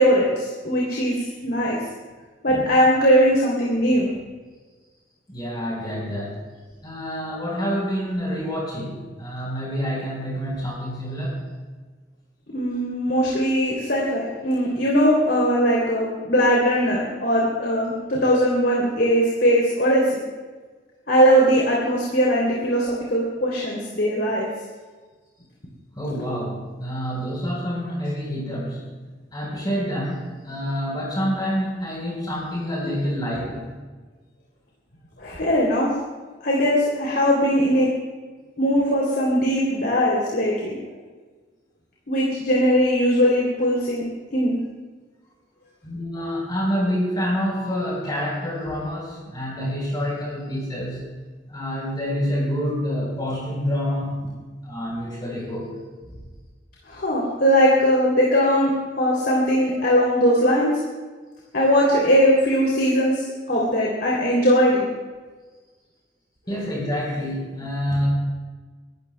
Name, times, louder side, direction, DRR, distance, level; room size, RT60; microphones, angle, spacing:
voice 1, 0.0-1.8 2.4-4.1 12.5-20.2 21.1-24.5 35.2-35.9 36.4-37.9 38.6-40.8 42.1-44.0 44.3-44.5 56.9-60.7 61.5-64.8, equal, 60° left, -4 dB, 3.0 m, -20 dB
voice 2, 5.3-6.4 6.8-11.4 25.9-28.8 29.3-33.7 45.8-51.1 51.5-54.3 54.6-55.8 66.5-68.1, equal, 25° left, -3 dB, 4.0 m, -27 dB
27.0 x 13.5 x 2.2 m, 1.4 s
head